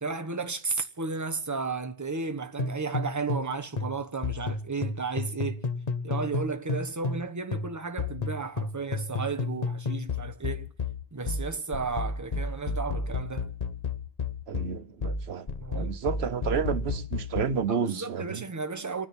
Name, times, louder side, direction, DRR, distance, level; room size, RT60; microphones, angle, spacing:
voice 1, 0.0-5.6 6.0-10.7 11.1-13.5 15.6-16.0 17.7-19.1, right 4 dB, 20° right, 1.1 m, -33 dB
sound 1, 2.6-3.5 3.8-7.3 7.5-17.6, left 3 dB, 40° left, 1.1 m, -32 dB
voice 2, 14.5-15.5 15.7-18.4, right 6 dB, 90° right, 1.2 m, -30 dB
30.0 x 10.0 x 4.3 m
omnidirectional pair, 1.0 m